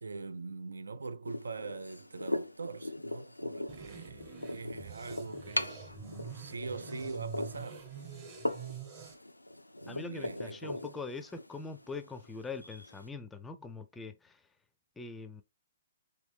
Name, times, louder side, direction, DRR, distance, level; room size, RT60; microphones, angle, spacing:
voice 1, 0.0-7.9 9.8-10.7, right 4 dB, 75° right, 0.4 m, -43 dB
sound 1, 1.2-13.1, left 1 dB, 90° left, 0.3 m, -40 dB
sound 2, 3.7-9.1, right 6 dB, 30° right, 1.0 m, -46 dB
voice 2, 9.9-14.4 15.0-15.4, left 4 dB, 10° left, 0.4 m, -43 dB
3.2 x 3.1 x 3.1 m
figure-of-eight pair, 120°, 0 cm